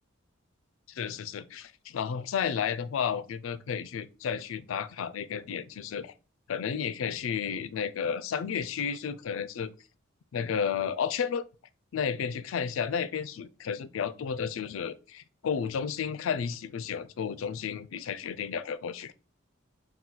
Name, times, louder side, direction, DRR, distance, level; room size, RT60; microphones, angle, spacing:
voice 1, 0.9-6.1 6.5-9.7 10.3-11.4 11.9-19.1, left 7 dB, 70° left, 0.4 m, -32 dB
3.8 x 2.2 x 4.3 m
head